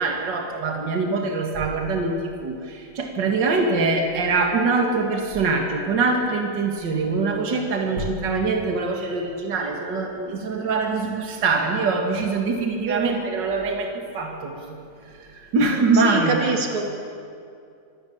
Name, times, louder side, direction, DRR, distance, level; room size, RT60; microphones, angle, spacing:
voice 1, 0.0-14.8 15.5-16.4, right 3 dB, 55° right, 2 dB, 2.6 m, -23 dB
voice 2, 12.8-13.2 15.9-16.8, right 3 dB, 80° right, 2 dB, 2.9 m, -25 dB
25.0 x 13.0 x 8.7 m, 2.5 s
omnidirectional pair, 2.3 m